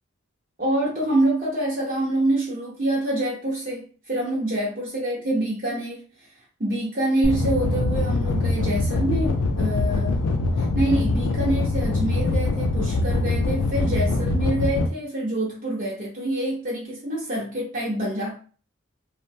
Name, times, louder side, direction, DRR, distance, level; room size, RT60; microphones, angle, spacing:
voice 1, 0.6-6.3 6.6-10.3 10.6-18.4, right 1 dB, 40° right, -6 dB, 0.6 m, -26 dB
sound 1, 7.2-14.9, left 2 dB, 90° left, 0.4 m, -23 dB
3.0 x 2.1 x 2.6 m, 0.39 s
head